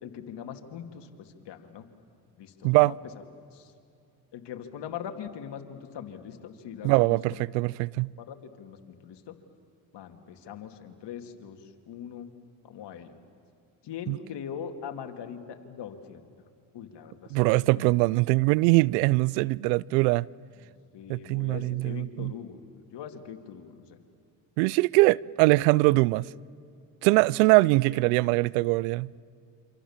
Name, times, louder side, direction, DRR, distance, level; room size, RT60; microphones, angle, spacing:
voice 1, 0.0-1.9 2.4-3.0 3.5-3.7 4.3-9.3 9.9-12.3 12.6-13.2 13.8-16.2 16.7-18.0 20.9-24.0 27.9-28.0, left 8 dB, 60° left, 2.7 m, -42 dB
voice 2, 6.8-8.1 14.1-14.2 17.3-20.3 21.1-22.3 24.6-26.3 27.0-29.1, right 23 dB, 85° right, 0.6 m, -22 dB
27.5 x 26.5 x 7.4 m
supercardioid pair, 70°, 48 cm